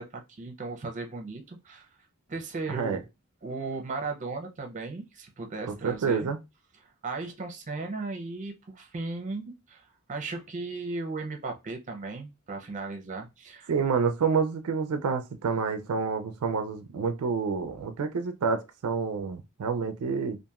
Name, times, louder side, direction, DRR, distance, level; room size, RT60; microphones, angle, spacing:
voice 1, 0.0-1.9 2.3-3.0 3.4-6.3 7.0-9.8 10.1-13.7, right 3 dB, 35° right, 0.6 m, -36 dB
voice 2, 2.7-3.0 5.7-6.4 13.7-20.4, right 5 dB, 80° right, 0.4 m, -28 dB
2.8 x 2.4 x 2.3 m
head